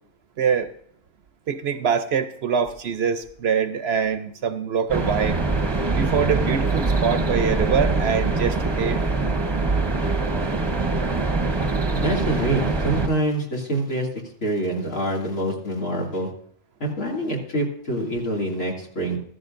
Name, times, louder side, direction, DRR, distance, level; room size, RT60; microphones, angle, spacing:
voice 1, 0.4-0.7 1.5-5.4 5.9-9.0, right 7 dB, 60° right, 0.8 m, -24 dB
sound 1, 4.9-13.1, right 3 dB, 25° right, 0.8 m, -23 dB
voice 2, 11.9-14.1 14.4-16.3 16.8-19.2, right 1 dB, 85° left, 3.0 m, -25 dB
14.5 x 14.0 x 2.6 m
omnidirectional pair, 1.3 m